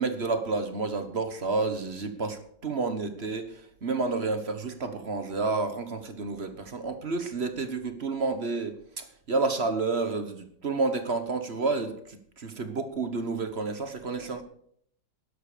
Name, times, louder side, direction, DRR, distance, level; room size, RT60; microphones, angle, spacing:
voice 1, 0.0-14.4, right 3 dB, 40° right, 9 dB, 1.4 m, -30 dB
12.0 x 11.5 x 5.1 m, 0.64 s
omnidirectional pair, 2.0 m